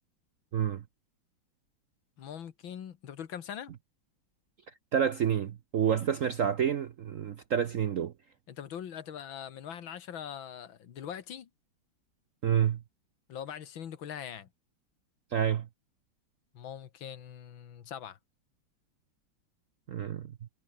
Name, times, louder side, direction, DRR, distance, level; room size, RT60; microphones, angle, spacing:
voice 1, 2.2-3.7 8.5-11.5 13.3-14.5 16.5-18.2, left 9 dB, 75° left, 2.2 m, -42 dB
voice 2, 4.9-8.1 12.4-12.8 15.3-15.7 19.9-20.3, right 9 dB, 60° right, 0.8 m, -28 dB
omnidirectional pair, 2.2 m